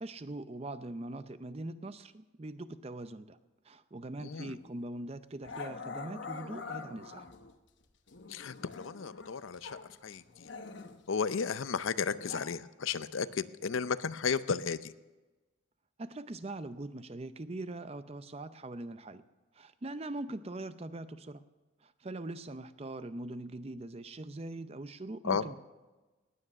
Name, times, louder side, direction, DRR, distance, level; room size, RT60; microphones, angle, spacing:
voice 1, 0.0-3.4 3.6-7.3 16.0-19.2 19.5-21.4 21.8-25.6, right 2 dB, 30° right, 13 dB, 0.5 m, -42 dB
voice 2, 4.2-4.5 8.3-10.5 11.1-14.9 25.2-25.4, left 5 dB, 75° left, 15 dB, 0.6 m, -34 dB
Growling, 4.5-4.7 5.4-7.5 8.1-9.9 10.1-12.4, left 4 dB, 60° left, 1.0 m, -45 dB
18.5 x 9.8 x 6.5 m, 1.2 s
head